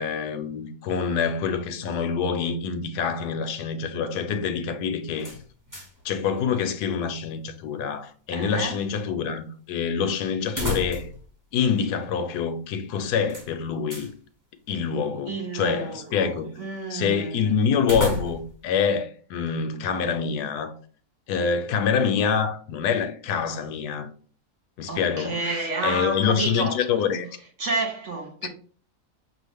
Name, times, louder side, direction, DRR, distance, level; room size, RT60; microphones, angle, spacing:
voice 1, 0.0-5.4 6.0-11.1 11.5-14.1 14.7-16.5 16.9-20.8 21.3-24.1 24.8-27.3 28.4-28.5, left 6 dB, 75° left, 1.1 m, -26 dB
heavy metal door, 5.2-6.1 6.4-6.5 10.4-11.3 11.6-11.7 13.3-14.1 17.8-18.6, left 1 dB, 15° right, 0.8 m, -31 dB
voice 2, 8.3-8.8 15.3-17.5 24.9-26.8 27.6-28.5, right 2 dB, 55° right, 1.1 m, -30 dB
6.2 x 2.4 x 3.4 m
omnidirectional pair, 1.7 m